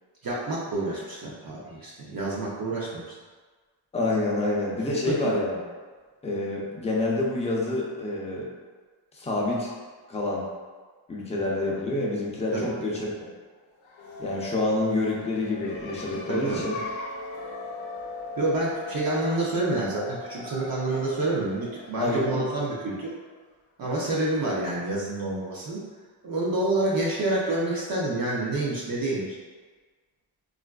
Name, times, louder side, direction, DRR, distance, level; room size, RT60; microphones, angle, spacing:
voice 1, 0.2-3.0 5.1-5.3 12.5-12.7 16.3-16.6 18.4-23.1 23.8-25.8 26.2-29.4, right 2 dB, 50° right, -5 dB, 0.5 m, -28 dB
voice 2, 3.9-5.6 6.2-8.5 9.1-9.7 10.1-10.4 11.1-13.1 14.2-16.8 22.0-22.6, left 2 dB, 15° left, -4 dB, 0.4 m, -27 dB
sound 1, 13.8-23.3, left 2 dB, 80° left, 0.6 m, -39 dB
3.8 x 2.4 x 2.2 m, 1.4 s
wide cardioid pair, 150°, 46 cm